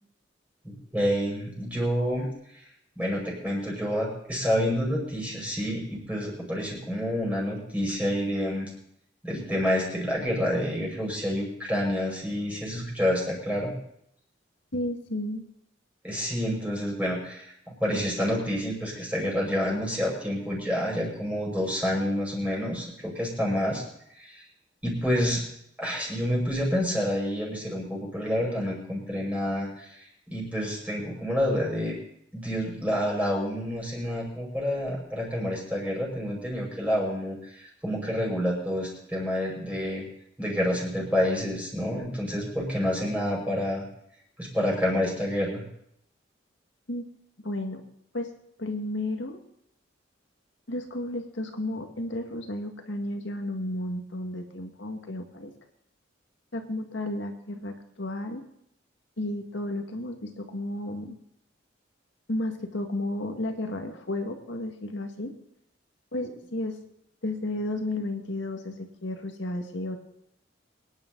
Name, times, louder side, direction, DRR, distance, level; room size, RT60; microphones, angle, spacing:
voice 1, 0.6-2.3 3.0-8.7 9.2-13.8 16.0-23.8 24.2-24.4 24.8-25.4 25.8-32.0 32.3-40.0 40.4-43.9 44.4-45.6, equal, 10° right, -4 dB, 5.6 m, -28 dB
voice 2, 14.7-15.4 46.9-47.0 47.4-47.8 48.1-48.3 48.6-49.4 50.7-55.5 56.5-58.4 59.2-61.2 62.3-65.3 66.1-66.8 67.2-70.0, left 1 dB, 75° left, 4 dB, 2.0 m, -32 dB
24.0 x 10.5 x 4.0 m, 0.74 s
head